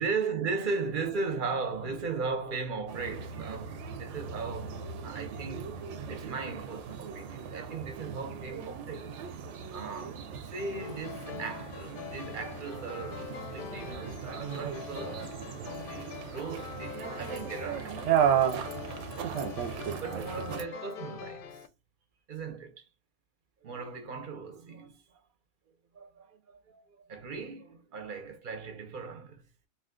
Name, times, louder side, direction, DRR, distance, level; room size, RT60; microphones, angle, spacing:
voice 1, 0.0-5.7 6.1-9.1 9.5-15.3 15.6-21.6 22.3-22.9 23.6-25.2 25.9-29.4, right 4 dB, 55° right, 0.7 m, -38 dB
sound 1, 2.9-20.6, right 8 dB, 85° right, 0.9 m, -35 dB
sound 2, 10.6-21.7, left 7 dB, 60° left, 0.6 m, -44 dB
2.5 x 2.3 x 3.5 m
omnidirectional pair, 1.2 m